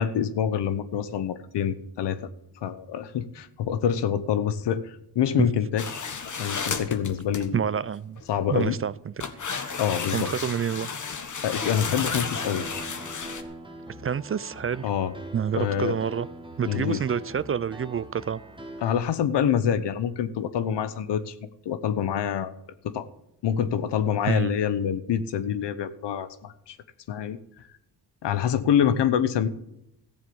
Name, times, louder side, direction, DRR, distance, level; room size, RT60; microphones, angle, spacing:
voice 1, 0.0-2.2 2.6-5.9 6.4-7.6 8.3-8.8 9.8-10.3 11.4-12.7 14.8-15.1 15.5-16.0 16.7-17.0 18.8-21.3 21.6-22.5 22.8-23.1 23.4-26.8 27.1-27.4 28.2-29.5, left 8 dB, 80° left, 1.0 m, -26 dB
sound 1, 5.8-7.5 8.2-8.6 9.2-13.4, left 5 dB, 45° left, 1.5 m, -32 dB
voice 2, 7.5-8.2 8.5-9.1 10.1-10.9 14.0-14.9 15.3-16.3 16.6-18.4 24.3-24.6, right 8 dB, 35° right, 0.4 m, -28 dB
Piano, 12.1-19.0, right 1 dB, 10° right, 1.5 m, -42 dB
14.5 x 7.4 x 7.0 m
cardioid pair, 65°, 41 cm